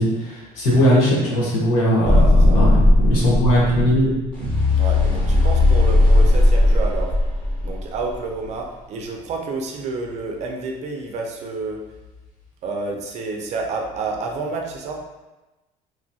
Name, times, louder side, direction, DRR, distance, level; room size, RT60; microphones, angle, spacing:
voice 1, 0.0-2.1 2.4-4.1, equal, 90° left, -6 dB, 1.1 m, -19 dB
sound 1, 2.0-8.1, left 2 dB, 10° left, 1.2 m, -16 dB
voice 2, 2.0-2.7 4.8-7.1 7.6-11.8 12.6-15.0, right 3 dB, 45° right, 1 dB, 0.4 m, -29 dB
2.9 x 2.2 x 2.7 m, 1.1 s
cardioid pair, 155°, 16 cm